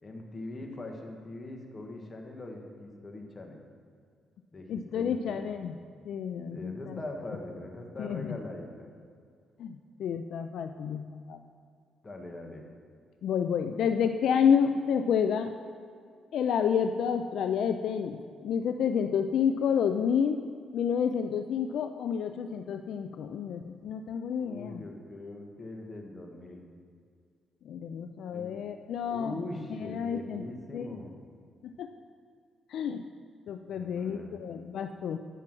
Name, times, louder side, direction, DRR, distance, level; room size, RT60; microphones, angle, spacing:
voice 1, 0.0-3.6 4.5-5.5 6.5-8.9 12.0-12.6 24.4-26.6 28.3-28.6 29.0-31.1 33.7-34.4, left 2 dB, 25° left, 2 dB, 1.5 m, -42 dB
voice 2, 4.7-5.8 6.0-7.0 8.0-8.3 9.6-11.4 13.2-15.5 16.3-20.4 20.7-24.8 27.7-29.3 29.7-30.5 30.7-30.9 31.6-31.9 32.7-33.0 33.5-35.2, left 7 dB, 70° left, 8 dB, 0.4 m, -29 dB
9.0 x 5.8 x 6.1 m, 2.2 s
cardioid pair, 90°, 0 cm